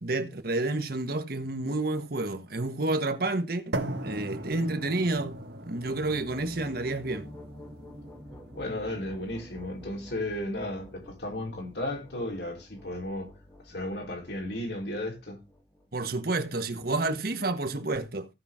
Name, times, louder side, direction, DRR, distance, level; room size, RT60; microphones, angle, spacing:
voice 1, 0.0-3.8 4.0-7.3 15.9-18.3, right 2 dB, 60° right, 1.5 m, -30 dB
sound 1, 3.7-11.8, right 1 dB, 90° right, 1.6 m, -40 dB
sound 2, 5.6-16.3, left 1 dB, 15° left, 3.0 m, -49 dB
voice 2, 8.5-13.3 13.6-15.4, left 1 dB, 70° left, 4.0 m, -34 dB
16.5 x 5.9 x 3.7 m
head